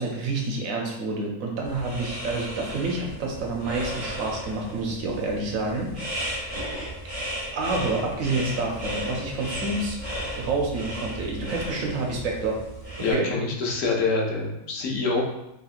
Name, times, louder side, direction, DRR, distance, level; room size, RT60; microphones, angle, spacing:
voice 1, 0.0-6.5 7.5-10.0 10.4-12.6 13.0-13.3, right 3 dB, 80° right, 0 dB, 1.1 m, -28 dB
sound 1, 1.6-13.1, equal, 30° right, 1.1 m, -35 dB
voice 2, 13.0-15.2, left 3 dB, 75° left, -1 dB, 1.0 m, -26 dB
2.9 x 2.7 x 2.4 m, 0.88 s
omnidirectional pair, 1.4 m